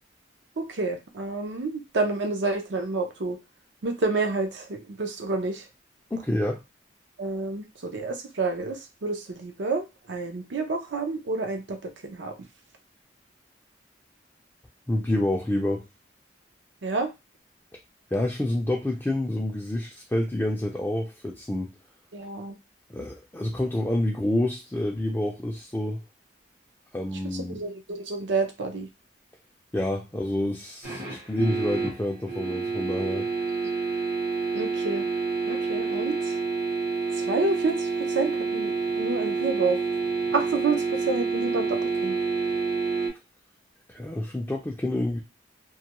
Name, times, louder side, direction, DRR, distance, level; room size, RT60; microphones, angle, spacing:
voice 1, 0.6-3.4 3.8-5.6 7.2-12.3 16.8-17.1 22.1-22.6 27.4-28.9 34.5-35.0 35.5-36.4 37.1-39.8 40.3-42.1, right 3 dB, 80° right, 4 dB, 0.6 m, -29 dB
voice 2, 6.1-6.6 14.9-15.8 18.1-21.7 22.9-26.0 26.9-27.6 29.7-33.3 43.9-45.2, left 1 dB, 10° left, -2 dB, 0.3 m, -28 dB
sound 1, 30.8-43.1, right 4 dB, 55° right, 0.8 m, -28 dB
2.2 x 2.2 x 2.9 m, 0.24 s
head